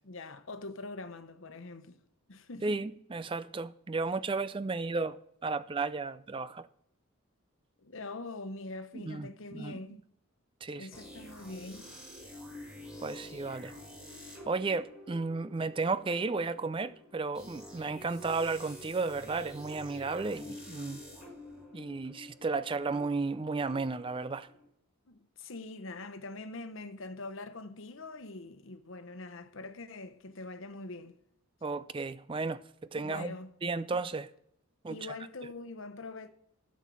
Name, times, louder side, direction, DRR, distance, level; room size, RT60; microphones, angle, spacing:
voice 1, 0.0-2.0 2.3-2.8 7.8-10.0 10.7-11.9 25.1-31.2 32.9-33.5 34.9-36.3, left 2 dB, 65° left, 1.0 m, -43 dB
voice 2, 2.6-5.2 5.4-6.7 8.9-9.8 10.6-10.9 13.0-13.7 14.5-21.0 21.7-24.5 31.6-32.6 32.9-33.3 33.6-34.3 34.8-35.0, right 3 dB, 25° right, 0.3 m, -33 dB
sound 1, 10.9-24.6, left 1 dB, 5° right, 4.8 m, -49 dB
12.0 x 7.3 x 6.2 m
head